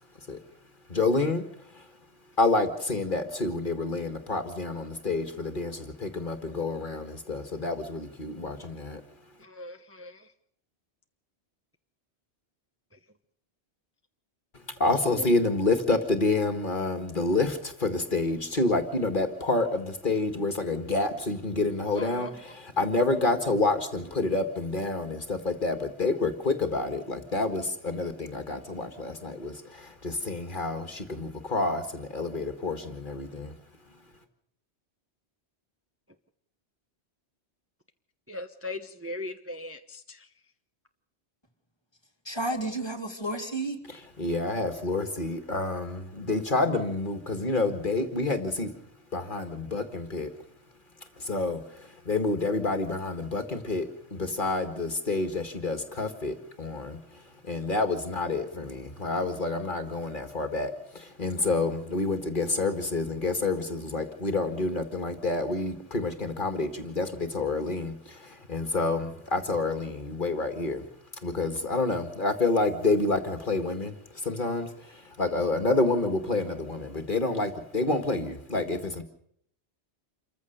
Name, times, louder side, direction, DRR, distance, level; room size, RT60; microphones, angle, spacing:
voice 1, 0.9-1.5 1.7-1.8 2.4-9.0 14.8-33.5 43.9-48.7 49.1-50.3 51.2-57.2 57.4-70.8 71.2-79.0, left 2 dB, 45° left, 8 dB, 1.9 m, -28 dB
voice 2, 9.4-10.3 15.2-15.3 21.9-22.3 38.3-40.3, left 1 dB, 15° right, 6 dB, 0.9 m, -39 dB
voice 3, 42.3-43.8, right 1 dB, 20° left, 3 dB, 2.6 m, -31 dB
27.5 x 15.0 x 6.8 m, 0.69 s
omnidirectional pair, 1.2 m